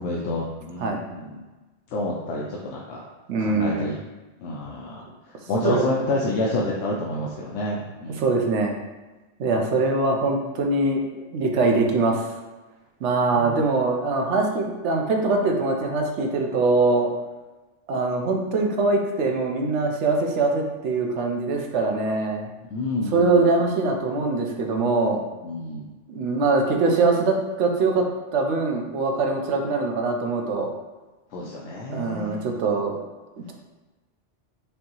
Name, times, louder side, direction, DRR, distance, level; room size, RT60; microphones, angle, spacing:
voice 1, 0.0-1.3 1.9-3.0 3.4-4.0 4.4-5.1 5.5-8.3 9.4-9.6 13.3-13.7 22.7-23.6 25.4-25.9 31.3-32.4, left 1 dB, 70° left, -3 dB, 0.8 m, -28 dB
voice 2, 3.3-4.0 5.6-5.8 8.2-8.7 9.4-12.3 13.0-17.1 17.9-22.5 23.1-25.2 26.1-30.7 31.9-32.9, right 3 dB, 70° right, 2 dB, 0.9 m, -23 dB
5.3 x 2.7 x 2.9 m, 1.2 s
omnidirectional pair, 1.3 m